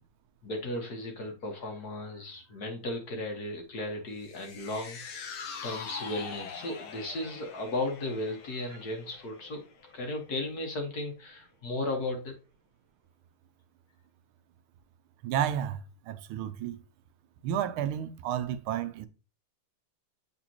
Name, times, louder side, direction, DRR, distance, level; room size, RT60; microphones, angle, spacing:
voice 1, 0.4-5.0 5.6-9.6 9.9-12.3, left 2 dB, 50° left, 1.6 m, -35 dB
sound 1, 4.2-10.6 11.0-11.1, left 6 dB, 85° left, 1.8 m, -44 dB
voice 2, 15.2-16.8 17.4-19.1, right 10 dB, 80° right, 1.4 m, -32 dB
7.9 x 4.3 x 2.9 m
omnidirectional pair, 2.3 m